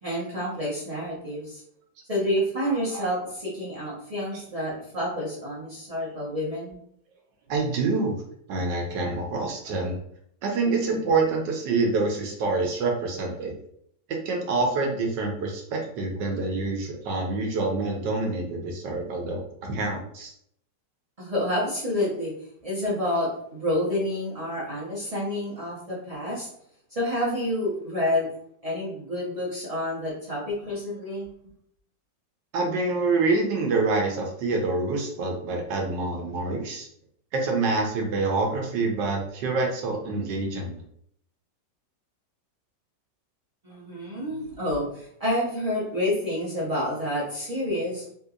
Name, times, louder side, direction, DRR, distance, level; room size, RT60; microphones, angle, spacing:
voice 1, 0.0-1.6 2.1-6.8 21.2-22.3 22.6-26.5 26.9-28.3 28.6-31.3 43.6-48.0, left 1 dB, 40° right, -7 dB, 0.5 m, -28 dB
voice 2, 7.5-8.1 8.5-10.0 10.4-13.5 14.3-20.3 32.5-36.9 37.3-40.8, right 3 dB, 75° right, 1 dB, 1.3 m, -26 dB
3.7 x 2.7 x 2.4 m, 0.69 s
omnidirectional pair, 2.0 m